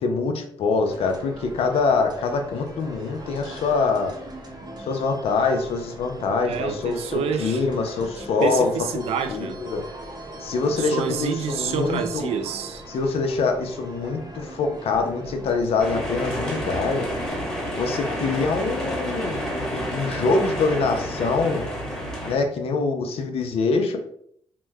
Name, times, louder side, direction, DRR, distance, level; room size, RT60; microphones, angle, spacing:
voice 1, 0.0-4.1 4.8-9.0 9.3-9.8 10.4-12.3 12.9-17.1 17.7-21.7 22.2-24.0, left 4 dB, 70° left, 5 dB, 0.6 m, -24 dB
sound 1, 0.8-17.3, right 1 dB, 45° right, 0.8 m, -40 dB
voice 2, 6.4-7.6 8.2-9.6 10.8-12.8, right 7 dB, 75° right, 9 dB, 0.4 m, -28 dB
sound 2, 15.8-22.4, equal, 5° left, 1.1 m, -29 dB
2.9 x 2.1 x 3.4 m, 0.66 s
cardioid pair, 75°, 10 cm